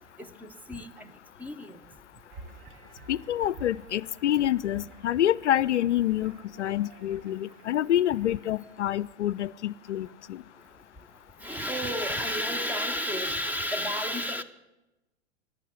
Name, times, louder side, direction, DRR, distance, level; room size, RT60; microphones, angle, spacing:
voice 1, 0.2-1.1 1.4-1.8 11.4-14.4, equal, 5° right, 8 dB, 0.7 m, -31 dB
sound 1, 2.3-8.9, right 3 dB, 35° right, 1.5 m, -51 dB
voice 2, 3.1-10.4, left 12 dB, 70° left, 21 dB, 0.5 m, -27 dB
14.5 x 10.5 x 8.1 m, 1.0 s
figure-of-eight pair, 105°, 36 cm